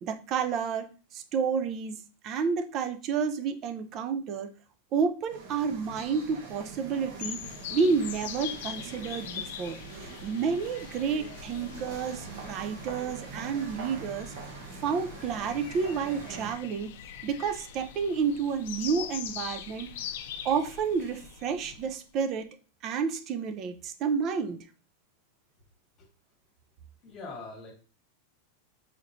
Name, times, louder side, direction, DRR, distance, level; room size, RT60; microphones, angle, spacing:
voice 1, 0.0-4.5 4.9-7.4 7.7-9.8 10.2-14.3 14.8-16.9 17.2-19.9 20.4-22.5 22.8-24.6, right 6 dB, 30° right, 8 dB, 0.4 m, -30 dB
sound 1, 5.3-16.5, right 4 dB, 55° right, 1.0 m, -44 dB
sound 2, 7.2-21.9, left 9 dB, 65° left, 0.4 m, -42 dB
voice 2, 27.0-27.7, left 3 dB, 25° left, 1 dB, 1.5 m, -41 dB
4.3 x 3.0 x 2.5 m, 0.36 s
supercardioid pair, 160°, 0 cm